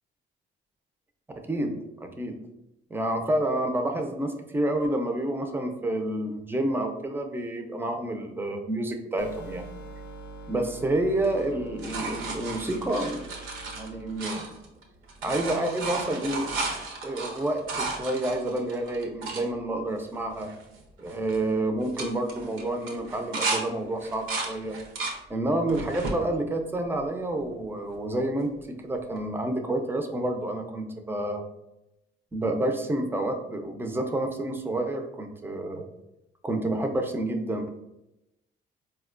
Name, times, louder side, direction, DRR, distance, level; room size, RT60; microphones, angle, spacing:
voice 1, 1.3-2.4 2.9-9.6 10.5-13.2 13.7-14.5 15.2-16.5 17.0-20.5 21.0-24.8 25.3-31.4 32.3-35.9 36.4-37.7, right 1 dB, 10° right, 4 dB, 0.4 m, -29 dB
sound 1, 9.2-14.2, right 2 dB, 65° left, 0.5 m, -44 dB
sound 2, 11.2-14.8 15.1-19.4 20.0-20.1 20.3-20.8 21.1-21.4 21.8-23.6 24.0-25.2 25.7-26.2 26.8-27.6 29.2-29.3, right 3 dB, 80° right, 0.7 m, -34 dB
4.2 x 2.2 x 2.4 m, 0.88 s
cardioid pair, 90°, 20 cm